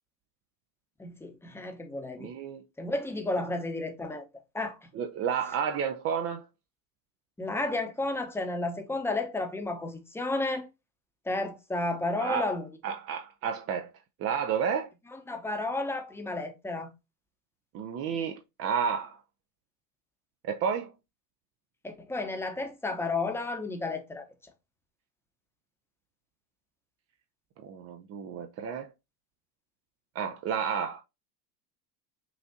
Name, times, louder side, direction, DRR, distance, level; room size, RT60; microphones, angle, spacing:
voice 1, 1.0-2.3 2.8-4.3 4.5-4.8 7.4-10.7 11.3-12.9 15.1-16.9 21.8-24.2, left 2 dB, 5° left, 0.8 m, -32 dB
voice 2, 2.2-2.6 4.9-6.4 12.2-12.5 12.8-13.9 14.2-14.9 17.7-19.2 20.4-20.9 27.6-28.9 30.2-31.0, right 7 dB, 30° right, 0.5 m, -31 dB
5.8 x 2.5 x 2.6 m
hypercardioid pair, 85°, 50 cm